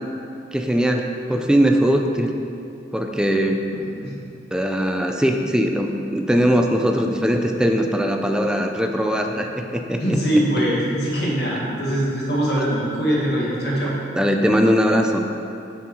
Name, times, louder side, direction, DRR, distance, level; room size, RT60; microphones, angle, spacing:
voice 1, 0.5-2.3 2.9-3.6 4.5-9.5 9.7-10.2 14.2-15.2, equal, 5° right, 3 dB, 0.4 m, -20 dB
voice 2, 10.0-14.0, equal, 65° left, -5 dB, 1.8 m, -22 dB
7.0 x 4.6 x 6.2 m, 2.7 s
head